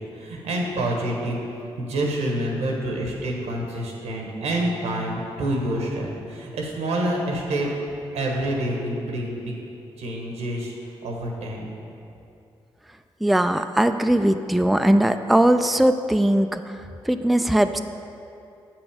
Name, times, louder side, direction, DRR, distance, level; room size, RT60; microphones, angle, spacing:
voice 1, 0.1-7.7 8.1-9.5 10.0-10.7 11.0-11.7, right 1 dB, 90° right, 0 dB, 1.3 m, -27 dB
voice 2, 13.2-16.6 17.1-17.8, right 1 dB, ahead, 8 dB, 0.4 m, -19 dB
7.6 x 6.1 x 5.1 m, 2.7 s
supercardioid pair, 55°, 11 cm